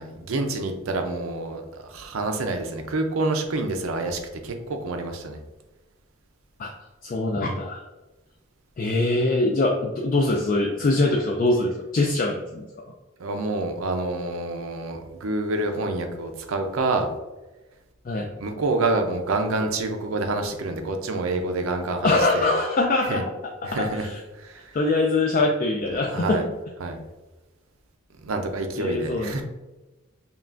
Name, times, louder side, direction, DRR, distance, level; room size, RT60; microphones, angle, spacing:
voice 1, 0.0-5.4 13.2-17.1 18.4-22.5 23.1-23.2 23.6-24.1 24.4-24.8 26.1-26.5 26.8-27.0 28.2-29.4, right 2 dB, 85° right, 5 dB, 0.6 m, -27 dB
voice 2, 7.0-7.8 8.8-12.9 18.1-18.3 22.0-23.2 23.6-24.2 24.7-26.4 28.8-29.4, left 2 dB, 40° left, 1 dB, 0.3 m, -23 dB
5.5 x 2.4 x 2.5 m, 1.1 s
head